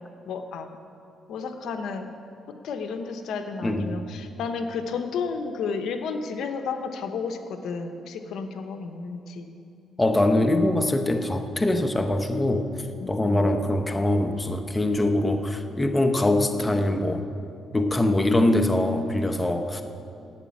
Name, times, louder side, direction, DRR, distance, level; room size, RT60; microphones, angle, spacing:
voice 1, 0.3-0.7 1.3-2.1 2.6-9.5 13.0-13.5, left 5 dB, 75° left, 7 dB, 0.9 m, -32 dB
voice 2, 3.6-4.0 10.0-12.7 13.1-17.3 17.7-19.8, left 1 dB, 15° left, 7 dB, 0.9 m, -23 dB
11.5 x 8.5 x 8.4 m, 2.6 s
cardioid pair, 90°, 0 cm